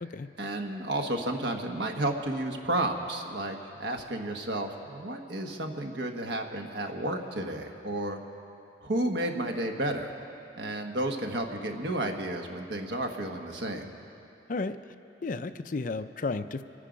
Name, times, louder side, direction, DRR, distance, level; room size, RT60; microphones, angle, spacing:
voice 1, 0.4-8.2 8.8-10.1 10.6-13.9, right 1 dB, 80° right, 4 dB, 1.3 m, -32 dB
voice 2, 15.2-16.6, left 3 dB, 45° left, 11 dB, 0.4 m, -33 dB
25.0 x 10.0 x 5.1 m, 2.8 s
head